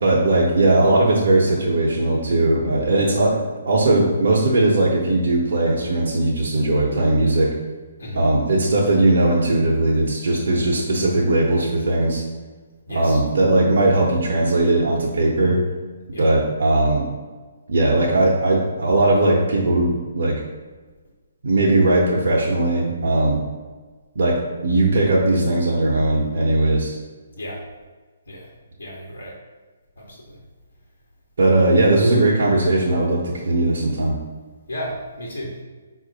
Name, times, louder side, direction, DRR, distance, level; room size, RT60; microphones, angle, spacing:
voice 1, 0.0-7.5 8.1-12.2 12.9-15.6 16.2-17.1 17.7-20.4 21.4-23.4 24.1-27.0 31.4-34.2, right 2 dB, 65° right, -4 dB, 0.8 m, -19 dB
voice 2, 12.9-13.2 16.1-16.2 27.4-27.6 28.3-28.5 28.8-29.4 30.0-30.4 31.6-31.7 34.7-35.6, equal, 85° left, -3 dB, 0.9 m, -33 dB
4.6 x 2.4 x 3.9 m, 1.4 s
figure-of-eight pair, 135°, 0 cm